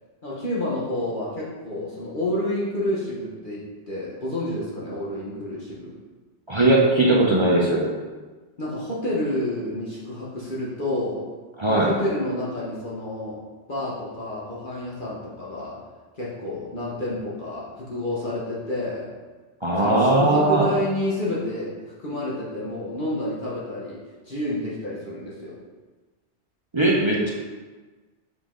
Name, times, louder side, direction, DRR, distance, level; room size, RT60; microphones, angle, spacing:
voice 1, 0.2-5.9 8.6-11.3 11.7-13.4 13.7-15.8 16.2-19.1 19.8-25.6, left 1 dB, 45° left, -6 dB, 1.2 m, -29 dB
voice 2, 6.5-7.9 11.6-11.9 19.6-20.6 26.7-27.3, right 2 dB, 30° right, -4 dB, 0.7 m, -19 dB
7.2 x 3.9 x 3.7 m, 1.3 s
omnidirectional pair, 1.2 m